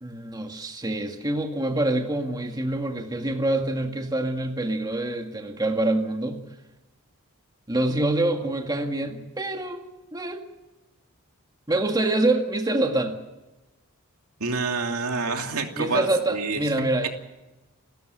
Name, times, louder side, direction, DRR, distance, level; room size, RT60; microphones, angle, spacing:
voice 1, 0.0-6.4 7.7-10.5 11.7-13.2 15.8-17.1, right 2 dB, 20° right, 4 dB, 1.9 m, -26 dB
voice 2, 14.4-16.6, right 4 dB, 90° right, 4 dB, 2.8 m, -27 dB
29.0 x 14.0 x 6.8 m, 1.1 s
head